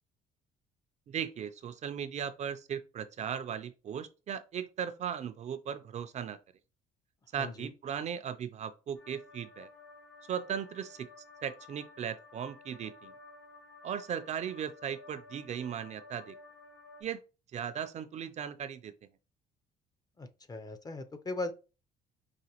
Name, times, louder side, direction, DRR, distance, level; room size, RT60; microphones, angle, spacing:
voice 1, 1.1-6.4 7.3-9.7 10.3-11.1 11.4-13.1 13.8-16.3 17.0-17.2 17.5-18.9, right 8 dB, 45° right, 0.4 m, -37 dB
voice 2, 7.4-7.7 20.2-21.5, left 2 dB, 20° left, 0.5 m, -38 dB
sound 1, 8.9-17.0, left 3 dB, 90° left, 1.5 m, -54 dB
4.9 x 2.5 x 2.9 m
cardioid pair, 110°, 17 cm